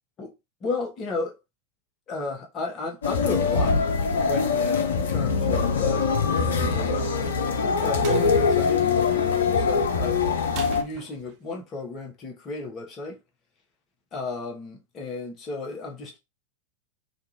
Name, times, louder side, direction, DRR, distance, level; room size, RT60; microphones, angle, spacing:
voice 1, 0.6-1.4 2.1-3.8 4.2-7.5 7.8-10.4 10.7-13.2 14.1-16.2, left 3 dB, 30° left, 0.9 m, -34 dB
sound 1, 3.0-10.8, left 5 dB, 65° left, 0.5 m, -23 dB
sound 2, 8.0-8.3 10.5-11.5, right 8 dB, 45° right, 0.4 m, -40 dB
2.5 x 2.4 x 2.9 m
figure-of-eight pair, 90°, 0 cm